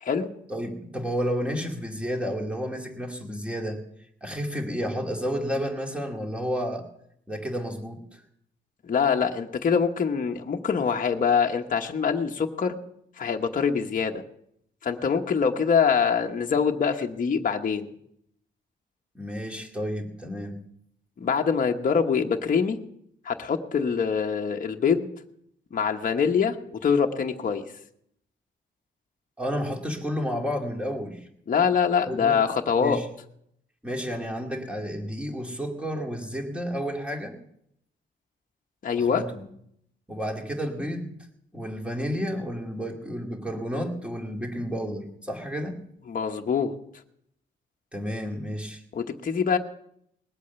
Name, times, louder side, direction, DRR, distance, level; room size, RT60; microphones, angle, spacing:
voice 1, 0.5-3.8 4.2-6.9 7.3-8.2 19.1-20.6 29.4-31.3 32.1-32.3 32.8-33.1 33.8-37.3 39.0-39.5 40.1-41.1 41.5-45.8 47.9-48.8, equal, 5° right, 2 dB, 2.3 m, -31 dB
voice 2, 8.8-12.8 13.2-14.2 14.8-17.9 21.2-22.8 23.2-25.1 25.7-27.6 31.5-33.0 38.8-39.2 46.1-46.7 48.9-49.6, left 6 dB, 45° left, 3 dB, 1.1 m, -24 dB
20.0 x 8.4 x 6.9 m, 0.72 s
wide cardioid pair, 145°, 20 cm